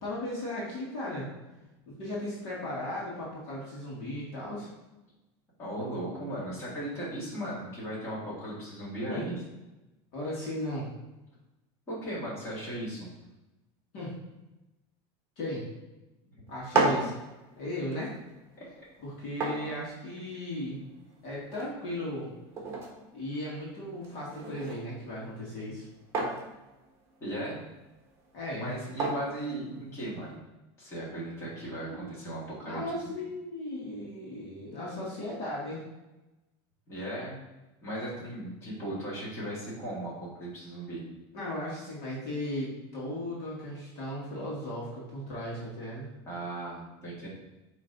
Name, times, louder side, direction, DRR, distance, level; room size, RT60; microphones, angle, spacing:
voice 1, 0.0-1.3 1.9-4.7 9.1-9.2 10.1-10.9 13.9-14.2 15.4-15.7 16.5-17.1 17.6-18.1 19.0-20.9 21.2-22.3 23.1-25.9 28.3-28.7 31.9-32.1 32.6-35.8 41.3-46.1, left 1 dB, 45° left, -6 dB, 1.8 m, -36 dB
voice 2, 5.6-9.4 11.9-13.1 16.9-17.0 18.6-18.7 27.2-27.6 28.6-30.3 30.8-33.0 36.9-37.4 37.8-40.1 40.4-41.0 46.3-47.3, right 1 dB, 20° left, -7 dB, 2.0 m, -37 dB
sound 1, 16.5-30.4, right 3 dB, 20° right, 1.2 m, -36 dB
8.4 x 3.1 x 4.0 m, 1.0 s
supercardioid pair, 175°, 14 cm